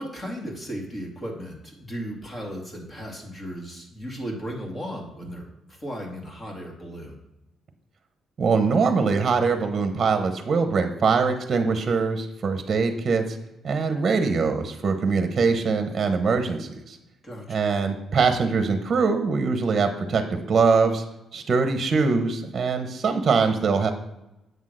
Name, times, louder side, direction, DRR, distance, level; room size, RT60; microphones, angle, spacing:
voice 1, 0.0-7.2 17.2-17.6, equal, 25° left, 0 dB, 2.3 m, -36 dB
voice 2, 8.4-13.4 13.6-17.0 17.5-21.0 21.3-23.9, right 4 dB, 45° right, 7 dB, 0.9 m, -23 dB
8.0 x 3.7 x 6.4 m, 0.91 s
cardioid pair, 90°, 0 cm